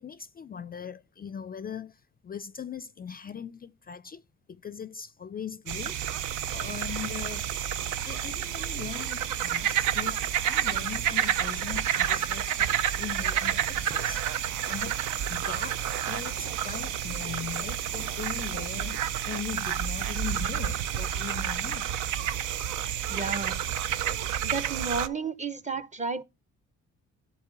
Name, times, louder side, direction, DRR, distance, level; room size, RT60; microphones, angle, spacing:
voice 1, 0.0-4.2 4.5-6.0 6.5-7.5 8.1-21.9, left 8 dB, 30° left, 0.4 m, -40 dB
sound 1, 5.7-25.1, right 10 dB, 85° right, 0.6 m, -30 dB
sound 2, 6.1-19.3, right 7 dB, 65° right, 1.0 m, -49 dB
voice 2, 23.1-23.6 24.4-26.2, right 4 dB, 25° right, 0.7 m, -32 dB
10.5 x 4.0 x 3.8 m
cardioid pair, 90°, 30 cm